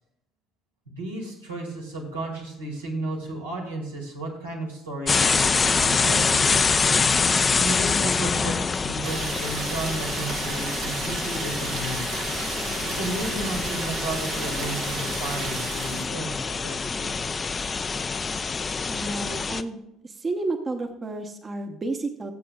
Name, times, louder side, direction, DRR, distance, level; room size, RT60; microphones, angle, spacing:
voice 1, 0.9-6.8 7.6-12.2 12.8-17.2, right 2 dB, 90° right, -3 dB, 2.1 m, -33 dB
sound 1, 5.1-19.6, left 5 dB, 30° left, 0.5 m, -25 dB
sound 2, 9.0-16.1, right 6 dB, 60° right, 0.9 m, -34 dB
voice 2, 18.9-19.8 20.0-22.3, right 2 dB, 30° right, 5 dB, 1.0 m, -31 dB
17.5 x 7.6 x 2.3 m, 0.83 s
hypercardioid pair, 60°, 0 cm